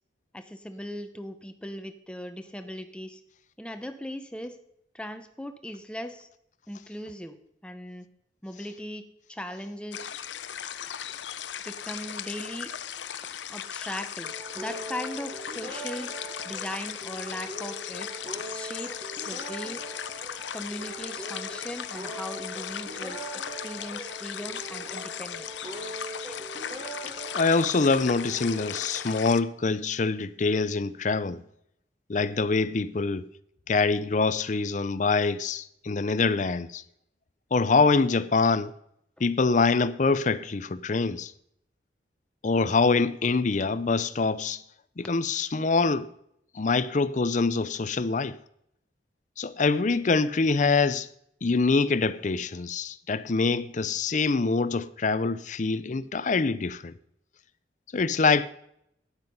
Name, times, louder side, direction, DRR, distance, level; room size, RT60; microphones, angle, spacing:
voice 1, 0.3-3.2 3.6-4.6 4.9-6.3 6.7-7.4 7.6-8.1 8.4-9.0 9.3-10.1 11.6-12.7 13.5-16.1 16.4-18.1 18.5-19.8 20.5-25.5, equal, 5° left, 0.9 m, -39 dB
sound 1, 9.9-29.4, left 9 dB, 80° left, 0.7 m, -37 dB
sound 2, 14.2-29.6, right 2 dB, 25° right, 2.0 m, -41 dB
voice 2, 27.3-31.4 32.1-33.2 33.7-36.8 37.5-38.7 39.2-41.3 42.4-44.6 45.0-46.1 46.6-48.4 49.4-51.1 51.4-56.9 57.9-58.5, left 4 dB, 40° left, 0.5 m, -25 dB
12.5 x 9.8 x 5.5 m
head